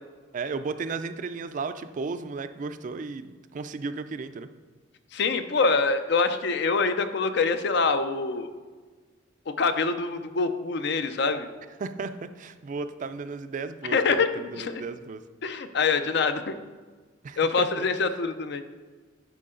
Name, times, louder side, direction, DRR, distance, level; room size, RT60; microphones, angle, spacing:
voice 1, 0.3-4.5 11.8-12.1 12.4-15.2 17.2-17.9, right 4 dB, 45° right, 10 dB, 0.3 m, -34 dB
voice 2, 5.1-8.5 9.5-11.5 13.9-14.8 15.4-16.5 17.4-18.6, left 4 dB, 65° left, 10 dB, 0.5 m, -25 dB
10.5 x 4.6 x 3.8 m, 1.4 s
head